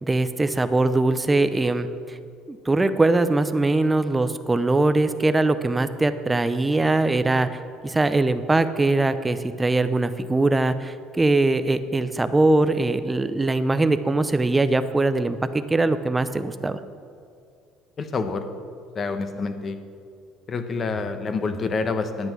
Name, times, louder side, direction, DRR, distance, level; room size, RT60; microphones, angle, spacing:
voice 1, 0.0-1.9 2.5-7.5 7.8-16.8, right 2 dB, 15° right, 11 dB, 0.6 m, -21 dB
voice 2, 18.0-18.5 18.9-19.8 20.5-22.3, left 4 dB, 35° left, 9 dB, 1.0 m, -27 dB
11.0 x 8.8 x 6.2 m, 2.3 s
cardioid pair, 120°, 0 cm